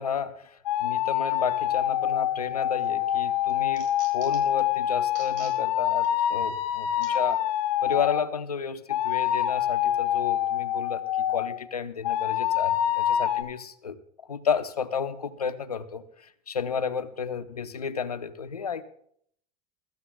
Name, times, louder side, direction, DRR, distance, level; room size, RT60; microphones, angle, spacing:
voice 1, 0.0-7.4 7.8-14.0 14.3-18.8, left 6 dB, 85° left, 13 dB, 0.8 m, -32 dB
sound 1, 0.7-8.3 8.9-11.6 12.0-13.4, left 11 dB, 60° left, 2.7 m, -26 dB
sound 2, 2.5-2.9 3.3-4.6 5.1-5.6 6.0-6.1 7.0-7.1 7.9-8.0, right 9 dB, 55° right, 5.4 m, -47 dB
22.5 x 14.0 x 2.3 m, 0.64 s
figure-of-eight pair, 80°, 19 cm